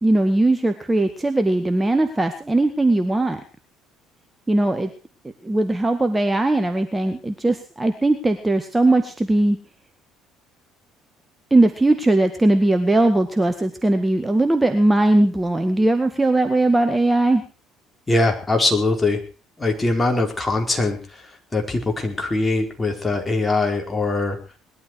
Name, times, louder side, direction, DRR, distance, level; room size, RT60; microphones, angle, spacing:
voice 1, 0.0-3.4 4.5-4.9 5.4-9.6 11.5-17.4, right 2 dB, 15° right, 7 dB, 2.0 m, -19 dB
voice 2, 18.1-19.2 19.6-24.4, left 2 dB, 20° left, 2 dB, 4.7 m, -22 dB
20.5 x 12.5 x 4.8 m, 0.35 s
figure-of-eight pair, 55°, 0 cm